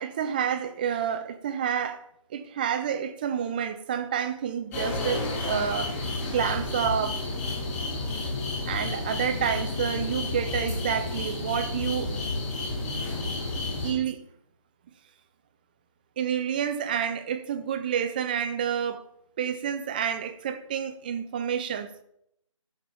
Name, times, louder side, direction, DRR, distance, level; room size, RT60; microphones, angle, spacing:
voice 1, 0.0-2.0 2.3-6.1 6.3-7.2 8.7-12.1 13.8-14.2 16.2-19.0 19.4-21.9, right 8 dB, 15° right, 0.5 m, -29 dB
sound 1, 4.7-13.9, left 2 dB, 25° left, 4.6 m, -31 dB
15.0 x 7.3 x 4.4 m
figure-of-eight pair, 150°, 18 cm